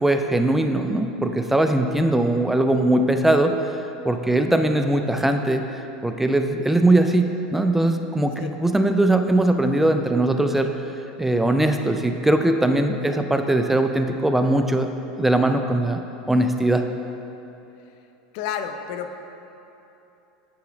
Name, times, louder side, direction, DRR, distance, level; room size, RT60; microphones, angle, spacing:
voice 1, 0.0-3.5 4.0-10.7 11.2-14.9 15.2-16.0 16.3-16.8, right 1 dB, 5° right, 6 dB, 0.3 m, -20 dB
voice 2, 18.3-19.2, left 8 dB, 65° left, 7 dB, 0.5 m, -30 dB
8.5 x 3.0 x 5.1 m, 2.9 s
hypercardioid pair, 105°, 4 cm